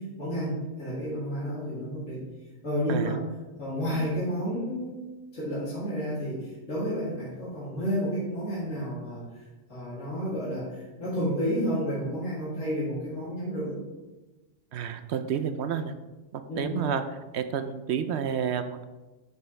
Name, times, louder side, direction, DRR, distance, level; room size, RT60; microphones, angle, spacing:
voice 1, 0.0-2.2 2.6-3.2 3.6-5.0 5.3-9.4 9.7-13.8 16.5-16.9, equal, 75° left, -10 dB, 3.2 m, -31 dB
voice 2, 14.7-15.9 16.3-18.8, right 8 dB, 65° right, 9 dB, 0.7 m, -30 dB
9.6 x 6.2 x 3.3 m, 1.2 s
omnidirectional pair, 1.4 m